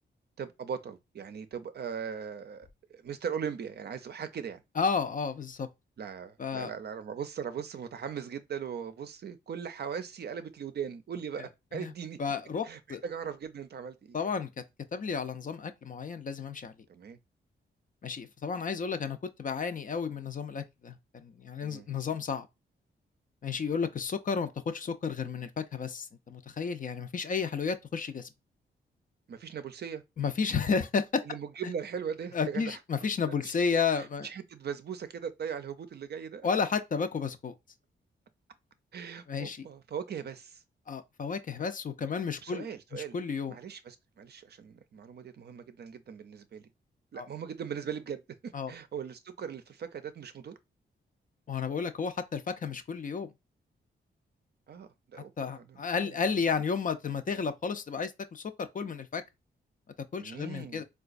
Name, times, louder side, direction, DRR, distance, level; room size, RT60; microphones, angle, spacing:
voice 1, 0.4-4.6 6.0-12.2 12.6-14.2 16.9-17.2 21.6-21.9 29.3-30.0 31.2-32.8 33.3-33.5 34.0-36.5 38.9-40.6 42.4-43.2 43.5-46.7 47.1-50.6 54.7-56.2 60.2-60.8, right 7 dB, 55° right, 0.5 m, -39 dB
voice 2, 4.8-5.7 6.4-6.7 11.7-11.9 12.2-13.0 14.1-14.6 14.9-16.7 18.0-22.5 23.4-28.3 30.2-31.2 31.6-31.7 32.3-34.3 36.4-37.5 39.3-39.6 40.9-42.6 42.9-43.6 47.1-47.3 48.5-48.7 51.5-53.3 55.4-59.2 60.1-60.8, left 5 dB, 45° left, 0.4 m, -32 dB
3.8 x 2.3 x 2.5 m
cardioid pair, 65°, 20 cm